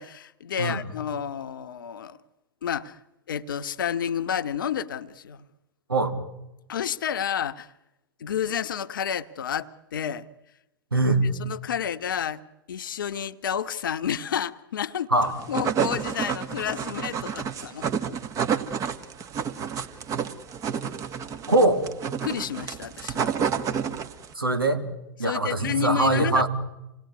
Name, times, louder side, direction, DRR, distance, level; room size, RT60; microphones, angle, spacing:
voice 1, 0.0-2.2 2.6-3.0 3.3-5.4 6.7-7.7 8.2-10.3 11.4-12.4 12.7-15.1 15.5-17.9 22.2-23.3 25.2-26.5, left 9 dB, 65° left, 1.2 m, -30 dB
voice 2, 10.9-11.2 15.1-15.3 19.8-19.9 21.5-21.8 24.3-24.8 25.2-26.5, right 2 dB, 85° right, 2.8 m, -22 dB
sound 1, 15.2-24.3, right 7 dB, 30° right, 1.7 m, -29 dB
27.5 x 19.5 x 9.5 m
figure-of-eight pair, 95°, 12 cm